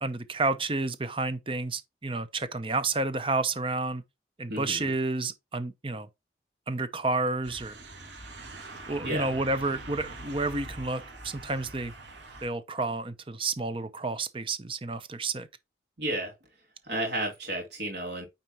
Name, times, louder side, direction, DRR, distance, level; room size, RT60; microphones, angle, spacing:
voice 1, 0.0-4.0 4.4-6.1 6.7-7.7 8.9-11.9 12.4-15.5, right 3 dB, 30° right, 0.7 m, -30 dB
voice 2, 4.5-4.9 9.0-9.3 16.0-16.3 16.8-18.3, right 1 dB, 70° right, 3.0 m, -32 dB
sound 1, 7.4-12.5, right 2 dB, 85° right, 2.6 m, -43 dB
9.2 x 4.3 x 3.0 m
head